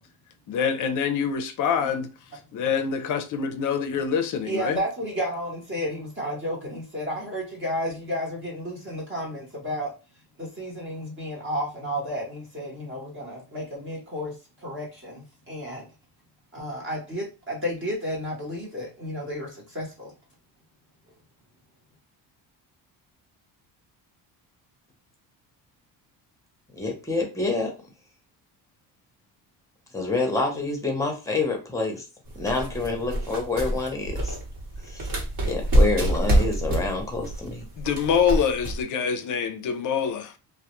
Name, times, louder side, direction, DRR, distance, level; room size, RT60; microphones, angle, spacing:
voice 1, 0.5-2.1 2.5-4.8 37.8-40.3, left 7 dB, 50° left, 0.5 m, -25 dB
voice 2, 4.4-9.9 10.4-15.9 16.5-20.1, equal, 30° right, 0.9 m, -32 dB
voice 3, 26.7-27.7 29.9-32.0 32.4-34.4 34.8-35.1 35.4-37.6, left 3 dB, 5° left, 0.7 m, -27 dB
sound 1, 32.3-38.8, right 1 dB, 50° right, 1.2 m, -26 dB
2.2 x 2.1 x 2.9 m
cardioid pair, 120°, 42 cm